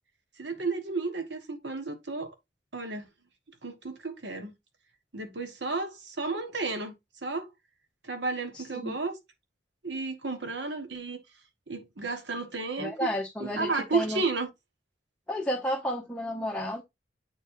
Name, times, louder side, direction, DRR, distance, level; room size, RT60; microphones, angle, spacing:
voice 1, 0.4-2.3 2.7-3.0 3.6-4.5 5.1-6.9 7.2-7.5 8.1-9.2 9.8-11.2 11.7-13.1 13.4-14.5, right 3 dB, 80° right, 1.3 m, -32 dB
voice 2, 8.5-8.9 12.8-14.2 15.3-16.8, equal, 5° left, 0.9 m, -32 dB
8.4 x 4.5 x 2.6 m
head